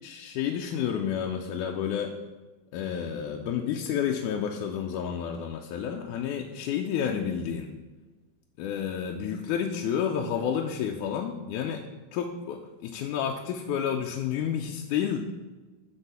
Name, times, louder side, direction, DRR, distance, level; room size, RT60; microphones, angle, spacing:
voice 1, 0.0-2.1 2.7-7.7 8.6-11.8 12.1-15.2, left 8 dB, 80° left, 2 dB, 2.0 m, -30 dB
9.9 x 4.1 x 6.8 m, 1.2 s
omnidirectional pair, 3.7 m